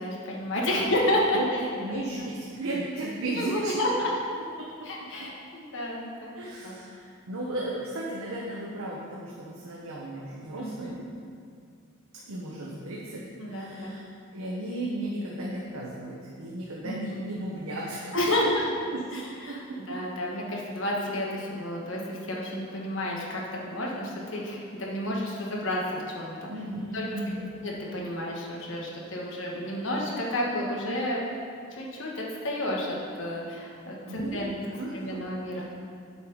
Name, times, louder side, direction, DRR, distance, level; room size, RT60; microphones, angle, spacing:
voice 1, 0.0-1.6 1.9-2.0 3.4-4.1 4.8-6.3 6.6-6.7 10.6-11.0 13.4-13.9 16.8-17.0 18.1-18.6 19.1-19.6 19.9-23.4 23.7-25.8 26.1-26.5 26.9-27.0 27.6-31.2 31.7-32.9 33.2-34.4 34.9-35.7, left 1 dB, 60° left, -3 dB, 1.4 m, -30 dB
voice 2, 1.7-3.8 4.6-4.9 5.2-5.3 6.3-11.0 12.1-13.2 13.5-14.0 14.3-18.3 18.9-19.2 19.5-19.6 19.9-20.0 26.5-27.5 34.1-35.3, right 1 dB, 80° right, -4 dB, 1.0 m, -35 dB
8.2 x 4.9 x 5.4 m, 2.3 s
head